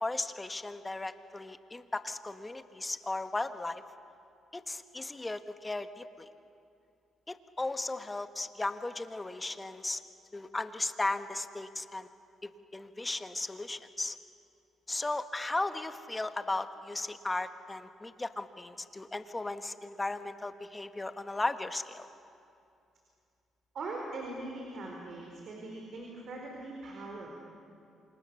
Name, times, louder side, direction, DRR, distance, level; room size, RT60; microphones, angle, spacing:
voice 1, 0.0-3.8 4.5-6.3 7.3-10.0 10.3-12.1 12.4-14.2 14.9-22.1, left 2 dB, 20° left, 9 dB, 1.3 m, -36 dB
voice 2, 23.7-27.3, right 2 dB, 60° right, 0 dB, 4.5 m, -41 dB
28.5 x 26.0 x 7.0 m, 2.5 s
cardioid pair, 90°, 0 cm